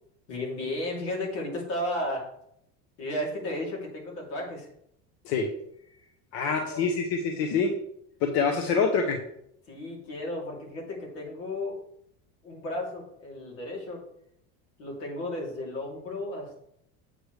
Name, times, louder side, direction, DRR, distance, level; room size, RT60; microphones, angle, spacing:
voice 1, 0.3-2.3 3.0-4.7 6.4-6.9 9.7-11.8 12.4-14.0 14.8-16.7, left 1 dB, 90° left, -2 dB, 3.1 m, -34 dB
voice 2, 6.3-7.7 8.2-9.2, left 5 dB, 60° left, 3 dB, 1.0 m, -25 dB
7.9 x 6.5 x 3.3 m, 0.74 s
cardioid pair, 170°, 36 cm